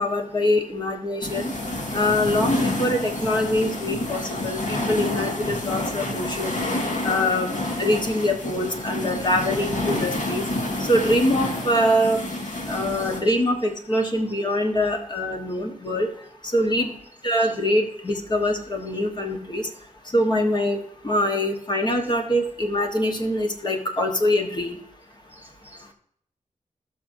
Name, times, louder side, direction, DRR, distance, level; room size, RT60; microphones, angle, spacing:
voice 1, 0.0-1.5 1.9-6.6 7.0-10.4 10.9-12.2 12.7-16.1 16.4-16.9 17.2-19.7 20.1-24.8, left 1 dB, 35° left, 2 dB, 1.4 m, -24 dB
sound 1, 1.2-13.2, left 1 dB, 65° left, 2.1 m, -28 dB
voice 2, 4.5-4.9 6.0-6.1 6.4-6.5 9.1-9.2 13.0-13.1 15.5-15.6 16.8-16.9 17.4-17.5 25.3-25.9, right 1 dB, 15° right, 4 dB, 1.2 m, -48 dB
18.0 x 6.1 x 2.8 m, 0.67 s
wide cardioid pair, 120°, 13 cm